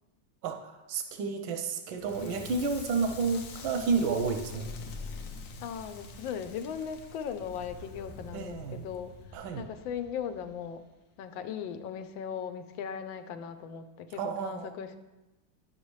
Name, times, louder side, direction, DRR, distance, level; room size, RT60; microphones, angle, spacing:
voice 1, 0.4-4.7 8.3-8.9 9.3-9.6 14.2-14.7, right 4 dB, 90° right, 5 dB, 1.5 m, -31 dB
Crackle, 1.9-10.9, left 3 dB, 65° left, 0.8 m, -45 dB
voice 2, 5.6-9.1 9.6-10.8 11.2-15.0, left 7 dB, 80° left, 10 dB, 1.3 m, -38 dB
10.5 x 7.2 x 3.1 m, 1.1 s
omnidirectional pair, 2.1 m